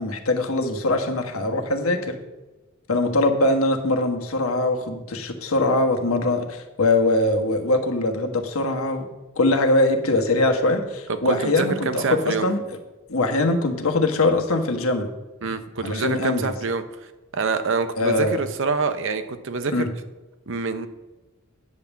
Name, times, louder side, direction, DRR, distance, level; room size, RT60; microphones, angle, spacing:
voice 1, 0.0-2.2 2.9-9.1 9.4-12.6 13.1-15.1 15.8-16.5 18.0-18.4 19.7-19.9, left 2 dB, 80° left, 3 dB, 1.4 m, -22 dB
voice 2, 11.2-12.5 15.4-16.8 17.3-19.9 20.5-20.9, right 4 dB, 60° right, 10 dB, 0.8 m, -26 dB
9.7 x 5.5 x 7.1 m, 1.1 s
head